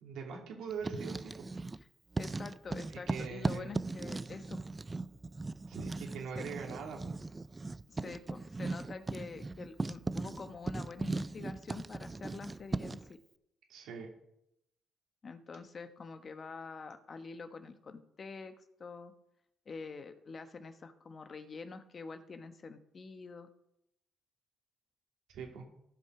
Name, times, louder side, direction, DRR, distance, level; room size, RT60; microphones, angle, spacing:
voice 1, 0.0-1.4 3.1-3.7 5.7-7.1 13.7-14.1 25.3-25.6, right 6 dB, 85° right, 1 dB, 2.7 m, -42 dB
Writing, 0.7-1.8 2.1-13.1, right 3 dB, 20° right, 0.4 m, -38 dB
voice 2, 2.2-4.6 6.3-6.5 7.9-13.2 15.2-18.5 18.8-19.1 19.7-23.5, left 4 dB, 40° left, 9 dB, 1.1 m, -46 dB
15.5 x 5.8 x 4.8 m, 0.81 s
cardioid pair, 90°, 0 cm